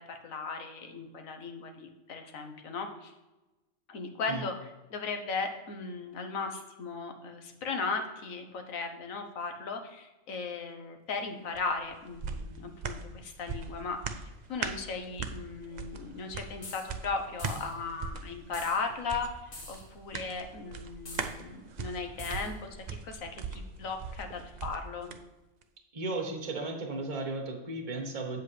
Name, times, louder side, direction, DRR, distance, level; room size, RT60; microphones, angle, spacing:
voice 1, 0.0-3.1 3.9-4.5 4.9-14.2 14.5-19.3 19.7-22.5 22.9-25.1, left 4 dB, 85° left, 5 dB, 1.4 m, -37 dB
sound 1, 11.5-25.2 25.6-25.7, right 5 dB, 55° right, 0.5 m, -40 dB
sound 2, 16.6-16.9 17.4-17.8 18.5-18.8 19.5-19.9 21.1-21.3 22.2-22.5, left 2 dB, 45° left, 1.5 m, -46 dB
voice 2, 25.9-28.4, right 2 dB, 30° right, 3 dB, 1.2 m, -35 dB
8.2 x 7.7 x 3.3 m, 1.1 s
omnidirectional pair, 1.4 m